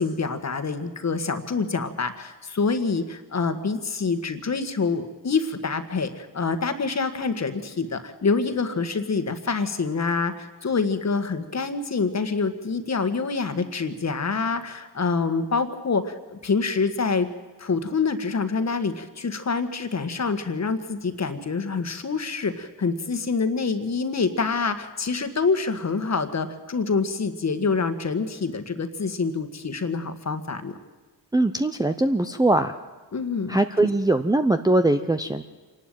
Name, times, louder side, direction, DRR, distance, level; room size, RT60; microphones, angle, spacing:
voice 1, 0.0-17.3 17.6-30.8 33.1-33.6, left 4 dB, 35° left, 9 dB, 1.7 m, -26 dB
voice 2, 31.3-32.7 33.5-35.4, right 2 dB, 10° right, 6 dB, 0.7 m, -21 dB
25.5 x 12.0 x 9.2 m, 1.3 s
cardioid pair, 80°, 44 cm